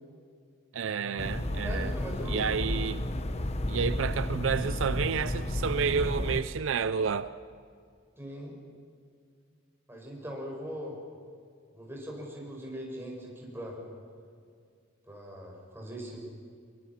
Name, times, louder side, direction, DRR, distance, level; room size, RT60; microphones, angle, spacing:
voice 1, 0.7-1.9 2.3-3.1 3.7-7.3, right 6 dB, 75° right, 0.5 m, -30 dB
sound 1, 1.2-6.4, left 1 dB, 35° left, 1.0 m, -32 dB
voice 2, 1.6-2.4 3.0-3.1 8.2-8.6 9.9-11.0 11.7-13.8 15.1-16.2, equal, 10° right, 5.4 m, -40 dB
24.0 x 23.5 x 5.8 m
head